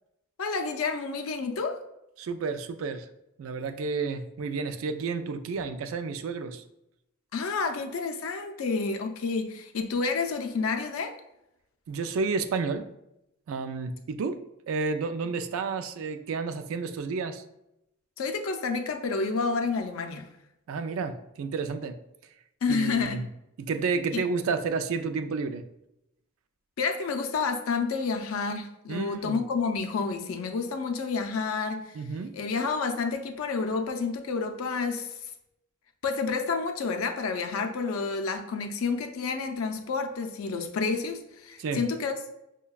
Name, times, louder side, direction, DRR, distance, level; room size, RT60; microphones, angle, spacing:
voice 1, 0.4-1.8 7.3-11.1 18.2-20.3 22.6-23.2 24.1-24.2 26.8-31.9 32.3-35.3 36.0-42.3, left 4 dB, 75° left, 6 dB, 0.4 m, -29 dB
voice 2, 2.2-3.1 3.4-6.6 11.9-12.9 13.5-17.4 20.7-22.0 22.7-23.3 23.6-25.6 28.9-29.4 31.9-32.3 41.6-41.8, right 4 dB, 70° right, 9 dB, 0.3 m, -31 dB
5.5 x 2.2 x 2.2 m, 0.85 s
head